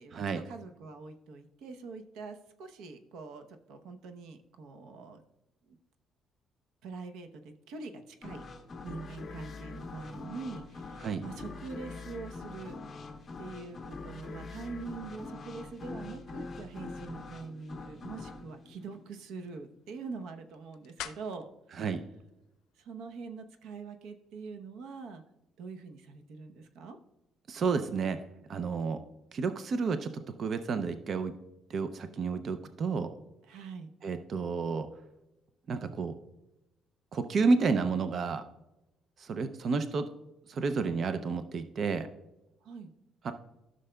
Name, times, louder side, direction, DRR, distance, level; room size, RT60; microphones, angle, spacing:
voice 1, 0.0-5.2 5.7-5.8 6.8-8.4 8.8-12.8 13.4-21.5 22.8-25.2 25.6-27.0 33.4-33.9 42.6-42.9, right 4 dB, 85° right, 7 dB, 0.8 m, -44 dB
sound 1, 8.2-19.7, left 3 dB, 30° left, 1.0 m, -44 dB
sound 2, 18.0-23.2, left 11 dB, 90° left, 0.5 m, -51 dB
voice 2, 27.5-28.2 28.5-29.0 29.3-30.1 30.4-31.3 31.7-33.1 34.0-34.9 35.7-36.2 37.1-38.4 39.2-40.1 40.5-42.1 43.2-43.3, right 4 dB, 40° right, 9 dB, 0.5 m, -30 dB
13.5 x 6.3 x 2.2 m, 0.93 s
cardioid pair, 155°, 0 cm